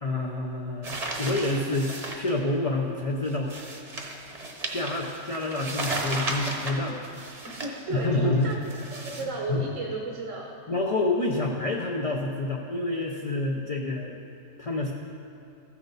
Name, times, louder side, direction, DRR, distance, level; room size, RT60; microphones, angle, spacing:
voice 1, 0.0-3.5 4.7-7.0 7.9-8.5 9.5-9.6 10.7-14.2 14.6-14.9, left 2 dB, 40° left, -1 dB, 0.5 m, -28 dB
sound 1, 0.8-2.3 3.3-7.8 8.4-9.2, right 2 dB, 35° right, 0.9 m, -34 dB
voice 2, 7.4-8.6 8.9-10.5, right 2 dB, 75° right, -1 dB, 1.3 m, -33 dB
14.5 x 6.0 x 4.0 m, 2.8 s
omnidirectional pair, 1.3 m